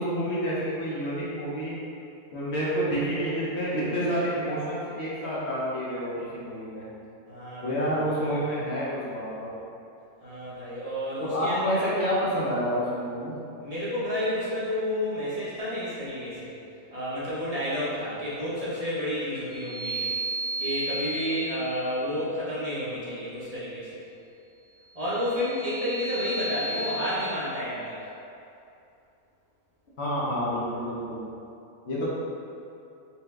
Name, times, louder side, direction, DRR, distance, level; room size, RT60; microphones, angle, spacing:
voice 1, 0.0-1.8 2.3-6.8 7.6-9.5 11.2-13.4 30.0-31.2 31.8-32.1, equal, 55° left, -8 dB, 0.9 m, -28 dB
voice 2, 7.3-8.4 10.2-12.0 13.6-16.5 16.9-20.1 20.6-24.0 24.9-28.0, equal, 30° right, -11 dB, 0.7 m, -31 dB
sound 1, 19.5-22.1 25.1-27.2, right 1 dB, 80° right, 1.6 m, -34 dB
4.5 x 2.2 x 3.2 m, 2.7 s
omnidirectional pair, 1.6 m